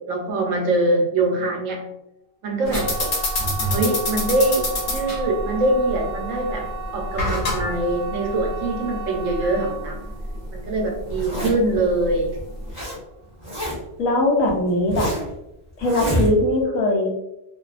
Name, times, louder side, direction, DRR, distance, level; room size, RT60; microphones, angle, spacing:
voice 1, 0.1-1.9 2.4-3.1 3.7-6.7 6.9-10.0 10.5-12.3, right 2 dB, 75° right, 1 dB, 1.0 m, -23 dB
sound 1, 2.6-13.5 13.8-14.3 14.7-14.8, right 4 dB, 40° left, 0.9 m, -35 dB
sound 2, 2.7-12.7, left 1 dB, 65° left, 1.1 m, -28 dB
Zipper (clothing), 11.1-11.8 12.4-13.0 13.2-14.0 14.5-15.3 15.8-16.6, equal, 15° left, 1.0 m, -27 dB
voice 2, 14.0-15.1 15.8-17.1, left 1 dB, 85° left, 0 dB, 1.1 m, -20 dB
2.6 x 2.3 x 2.3 m, 0.90 s
omnidirectional pair, 1.4 m